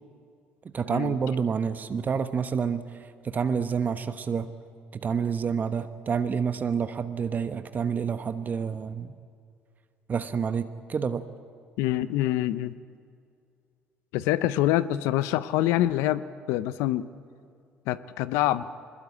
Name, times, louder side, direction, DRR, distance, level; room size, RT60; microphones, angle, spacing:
voice 1, 0.6-4.5 4.9-9.1 10.1-11.2, right 6 dB, 40° right, 10 dB, 1.0 m, -28 dB
voice 2, 11.8-12.8 14.1-17.1 17.9-18.7, left 14 dB, 80° left, 15 dB, 0.7 m, -26 dB
21.0 x 20.5 x 8.6 m, 2.4 s
supercardioid pair, 70°, 5 cm